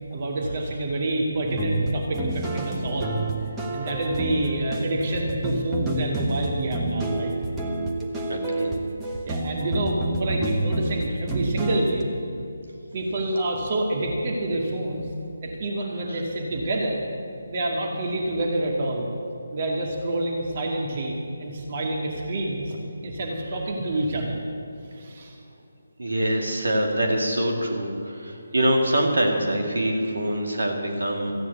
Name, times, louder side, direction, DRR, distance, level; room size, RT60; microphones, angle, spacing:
voice 1, 0.1-3.2 3.7-7.3 8.1-8.2 9.2-12.1 12.9-15.1 15.4-17.0 17.5-19.1 19.5-22.7 23.0-24.4 25.0-25.4, right 1 dB, 40° right, -1 dB, 2.2 m, -27 dB
sound 1, 1.5-12.0, right 2 dB, 10° right, 1.3 m, -29 dB
voice 2, 8.3-8.7 16.1-16.2 24.0-24.1 26.0-31.3, right 1 dB, 75° right, 1 dB, 2.5 m, -24 dB
14.5 x 9.2 x 8.2 m, 2.7 s
figure-of-eight pair, 155°, 0 cm